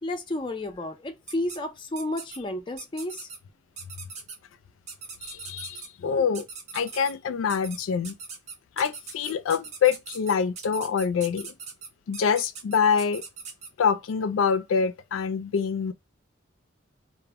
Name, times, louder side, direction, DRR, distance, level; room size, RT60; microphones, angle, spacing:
voice 1, 0.0-3.3 6.0-6.1, left 1 dB, 25° left, 0.5 m, -32 dB
sound 1, 1.3-1.6 2.0-2.4 2.8-3.4 3.8-4.4 4.9-5.9 6.3-7.1 7.5-7.8 8.0-13.7, right 5 dB, 35° right, 0.5 m, -40 dB
voice 2, 5.2-6.5 6.7-8.2 8.8-11.5 12.1-13.2 13.8-15.9, left 6 dB, 90° left, 0.4 m, -25 dB
2.1 x 2.0 x 3.4 m
head